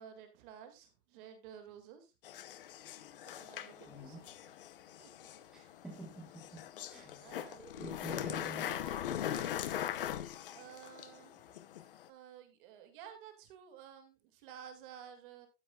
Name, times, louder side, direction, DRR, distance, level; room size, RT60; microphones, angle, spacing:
voice 1, 0.0-2.1 3.4-4.5 5.0-5.4 7.2-7.7 8.1-9.6 10.5-11.4 12.1-15.5, right 9 dB, 35° right, 2.0 m, -53 dB
sound 1, 2.2-12.1, left 11 dB, 35° left, 0.6 m, -41 dB
voice 2, 3.9-4.2 5.5-8.7, right 2 dB, ahead, 1.2 m, -49 dB
12.5 x 9.5 x 2.3 m
supercardioid pair, 170°, 46 cm